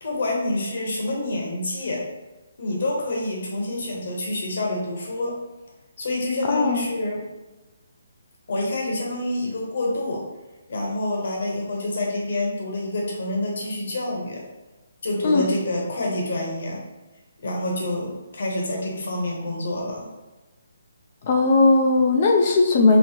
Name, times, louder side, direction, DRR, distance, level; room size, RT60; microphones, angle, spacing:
voice 1, 0.0-2.0 2.6-5.4 6.0-7.2 8.5-10.2 10.7-14.4 15.0-16.8 17.4-20.1, left 1 dB, 65° left, -1 dB, 1.1 m, -27 dB
voice 2, 6.5-6.8 15.2-15.5 21.2-23.0, left 3 dB, 40° left, 2 dB, 0.4 m, -18 dB
5.4 x 2.0 x 2.9 m, 1.1 s
hypercardioid pair, 155°, 0 cm